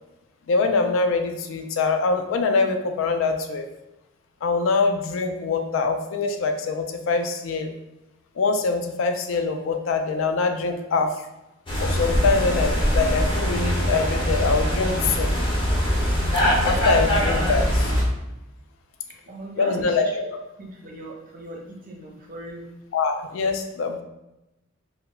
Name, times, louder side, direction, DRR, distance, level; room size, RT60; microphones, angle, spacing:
voice 1, 0.5-3.7 4.4-7.7 8.4-11.1 11.8-15.3 16.6-17.9 19.6-20.3 22.9-24.0, left 4 dB, 70° left, 6 dB, 0.3 m, -24 dB
sound 1, 11.7-18.0, equal, 25° left, 0.6 m, -22 dB
voice 2, 16.6-17.2 19.3-20.0 20.6-22.7, right 2 dB, 40° right, -1 dB, 0.5 m, -39 dB
2.1 x 2.0 x 3.6 m, 0.95 s
head